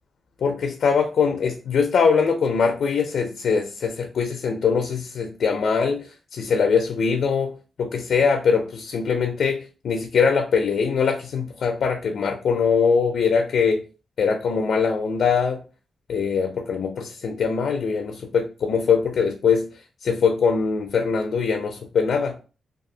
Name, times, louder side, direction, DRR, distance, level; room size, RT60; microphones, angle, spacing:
voice 1, 0.4-7.5 7.8-13.8 14.2-15.6 16.1-19.6 20.0-22.4, left 5 dB, 65° left, 4 dB, 0.4 m, -22 dB
2.6 x 2.3 x 2.6 m, 0.34 s
wide cardioid pair, 140°, 0 cm